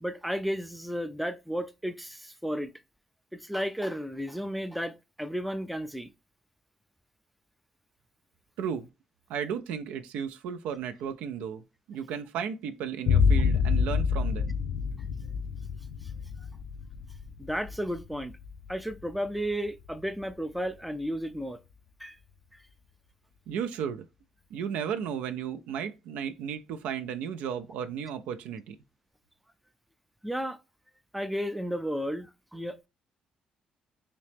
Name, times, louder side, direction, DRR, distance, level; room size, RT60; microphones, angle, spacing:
voice 1, 0.0-2.7 3.3-6.1 16.0-16.1 17.4-18.3 18.7-21.6 22.0-22.2 30.2-30.6 31.1-32.9, equal, ahead, 0.3 m, -33 dB
voice 2, 8.6-8.9 9.3-14.6 23.5-24.1 24.5-28.8, right 8 dB, 90° right, 0.3 m, -34 dB
sound 1, 13.1-20.4, left 6 dB, 70° left, 0.4 m, -28 dB
3.0 x 2.8 x 3.3 m
cardioid pair, 105°, 2 cm